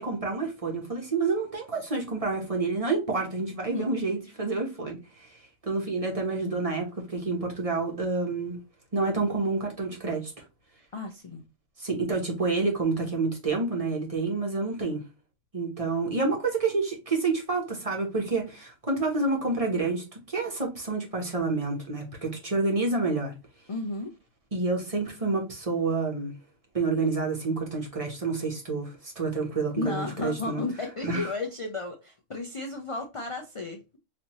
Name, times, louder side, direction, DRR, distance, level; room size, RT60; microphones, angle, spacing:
voice 1, 0.0-5.3 5.6-8.6 8.9-10.3 11.8-15.0 15.5-23.3 24.5-26.3 26.7-30.6 31.0-31.3, right 3 dB, 30° right, 1.0 m, -28 dB
voice 2, 10.9-11.4 23.7-24.1 29.8-33.8, left 3 dB, 50° left, 0.3 m, -33 dB
4.2 x 2.7 x 2.9 m
omnidirectional pair, 1.4 m